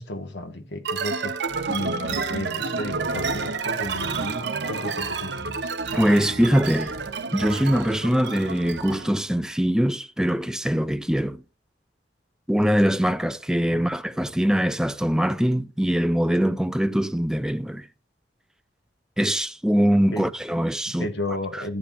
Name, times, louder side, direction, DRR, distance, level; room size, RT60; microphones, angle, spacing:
voice 1, 0.0-1.3 1.6-5.7 13.7-13.9 20.1-20.3 21.0-21.8, left 1 dB, 80° left, 1.6 m, -33 dB
sound 1, 0.8-9.1, right 4 dB, 75° right, 1.0 m, -29 dB
voice 2, 5.9-6.9 7.3-11.4 12.5-17.9 19.2-21.1, equal, 5° right, 0.4 m, -22 dB
14.5 x 8.3 x 2.6 m
head